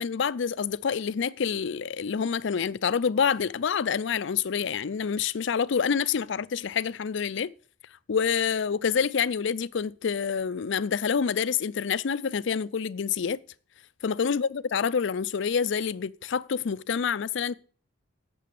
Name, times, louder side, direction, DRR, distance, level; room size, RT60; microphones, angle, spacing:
voice 1, 0.0-7.5 8.1-13.4 14.0-17.5, left 6 dB, 70° left, 0.5 m, -27 dB
8.5 x 7.0 x 8.6 m
head